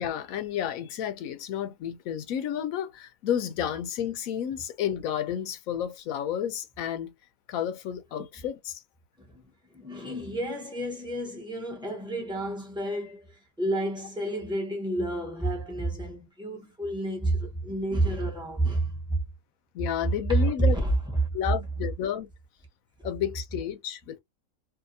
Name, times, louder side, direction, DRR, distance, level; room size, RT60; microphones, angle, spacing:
voice 1, 0.0-7.1 7.5-8.8 19.7-20.8 21.3-22.3 23.0-24.2, left 10 dB, 75° left, 1.0 m, -31 dB
voice 2, 9.7-19.2 20.3-20.9, right 2 dB, 5° right, 0.7 m, -29 dB
2.7 x 2.5 x 2.6 m
omnidirectional pair, 1.5 m